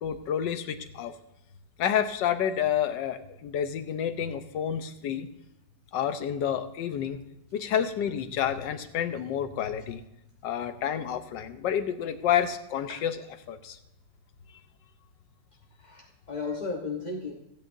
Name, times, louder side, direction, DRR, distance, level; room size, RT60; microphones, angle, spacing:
voice 1, 0.0-1.1 1.8-5.3 5.9-7.2 7.5-10.0 10.4-13.2 13.5-13.8, left 9 dB, 80° left, 10 dB, 1.4 m, -29 dB
voice 2, 15.8-17.3, left 4 dB, 30° left, -1 dB, 0.9 m, -34 dB
16.0 x 9.0 x 2.6 m, 0.88 s
omnidirectional pair, 1.9 m